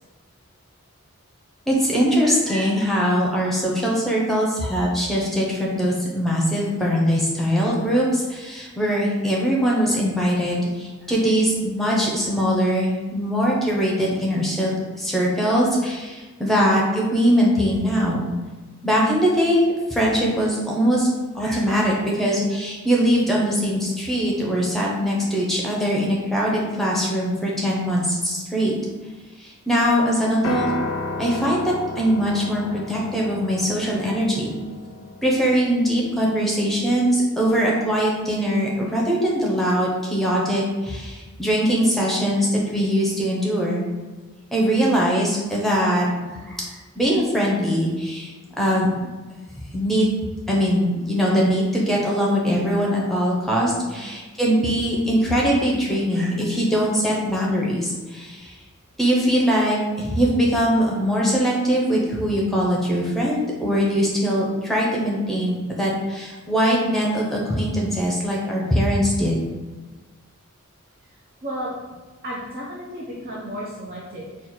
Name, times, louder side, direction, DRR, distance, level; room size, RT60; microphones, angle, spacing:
voice 1, 1.7-14.7 15.0-18.3 18.8-21.1 21.3-28.7 29.4-30.7 31.2-34.5 35.2-43.9 44.5-46.1 46.4-48.9 49.7-50.1 50.5-58.5 59.0-69.4, equal, ahead, -3 dB, 0.8 m, -21 dB
Piano, 30.4-38.7, left 2 dB, 75° left, 0.5 m, -34 dB
voice 2, 71.4-71.7 72.2-74.5, equal, 45° right, -4 dB, 0.7 m, -33 dB
4.4 x 2.4 x 4.3 m, 1.3 s
head